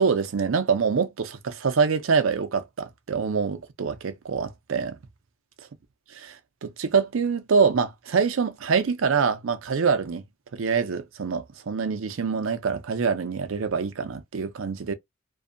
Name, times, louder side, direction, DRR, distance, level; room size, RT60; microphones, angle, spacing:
voice 1, 0.0-5.0 6.2-10.2 10.5-14.9, right 5 dB, 75° right, 0.5 m, -25 dB
2.6 x 2.2 x 2.5 m
head